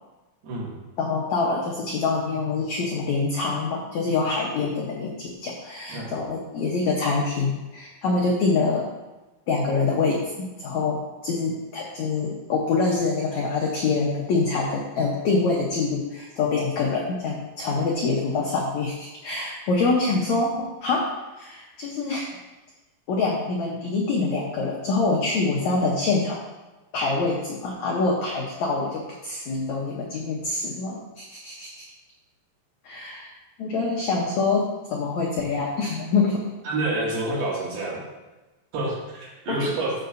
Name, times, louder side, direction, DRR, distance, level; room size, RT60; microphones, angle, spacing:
voice 1, 0.4-0.8 5.9-6.1 36.7-38.0 38.7-39.9, right 2 dB, 70° right, -5 dB, 4.2 m, -28 dB
voice 2, 1.0-8.9 9.5-22.3 23.1-26.4 26.9-31.8 32.8-33.3 33.6-36.5 39.5-39.7, left 3 dB, 80° left, -2 dB, 1.6 m, -25 dB
13.5 x 6.9 x 2.6 m, 1.1 s
omnidirectional pair, 4.7 m